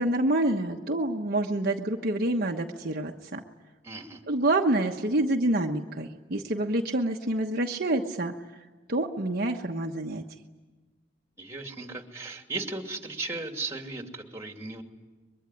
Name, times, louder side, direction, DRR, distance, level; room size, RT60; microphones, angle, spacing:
voice 1, 0.0-3.4 4.3-8.3 8.9-10.2, right 1 dB, 50° right, 2 dB, 1.2 m, -27 dB
voice 2, 3.8-4.2 11.4-14.8, right 3 dB, 15° right, 4 dB, 2.7 m, -36 dB
23.5 x 22.5 x 9.9 m, 1.3 s
head